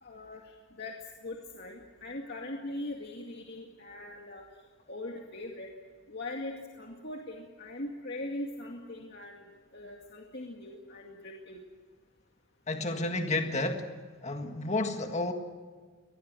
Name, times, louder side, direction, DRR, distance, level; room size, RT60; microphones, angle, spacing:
voice 1, 0.0-4.5 4.9-5.7 6.1-9.5 9.7-11.7, left 1 dB, 55° left, 0 dB, 2.3 m, -41 dB
voice 2, 12.7-13.9 14.2-15.3, left 2 dB, 35° left, 5 dB, 1.8 m, -31 dB
24.0 x 20.0 x 7.8 m, 1.5 s
head